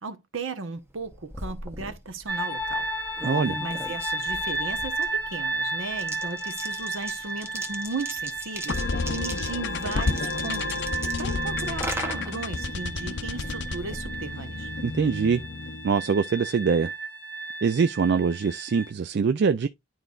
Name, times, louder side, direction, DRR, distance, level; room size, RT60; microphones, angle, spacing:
voice 1, 0.0-2.9 3.6-14.7, right 3 dB, 70° right, 1.0 m, -36 dB
sound 1, 0.9-14.9, right 1 dB, 10° right, 0.8 m, -40 dB
sound 2, 2.3-18.9, right 2 dB, 10° left, 1.2 m, -33 dB
voice 2, 3.2-3.6 14.8-15.4 15.8-16.9 17.6-19.7, right 5 dB, 55° right, 0.3 m, -23 dB
sound 3, 8.7-16.0, left 3 dB, 55° left, 0.6 m, -31 dB
11.0 x 3.9 x 2.4 m
head